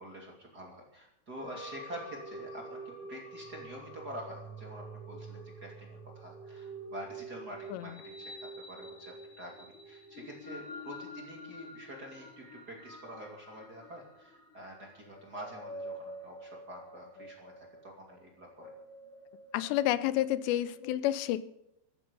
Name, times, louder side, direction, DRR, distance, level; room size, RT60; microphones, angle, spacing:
voice 1, 0.0-18.7, equal, 25° right, 0 dB, 2.5 m, -47 dB
sound 1, 1.4-20.9, right 1 dB, 35° left, 4.6 m, -47 dB
voice 2, 19.5-21.4, left 13 dB, 85° left, 15 dB, 2.9 m, -30 dB
14.5 x 14.0 x 5.4 m, 0.84 s
omnidirectional pair, 4.9 m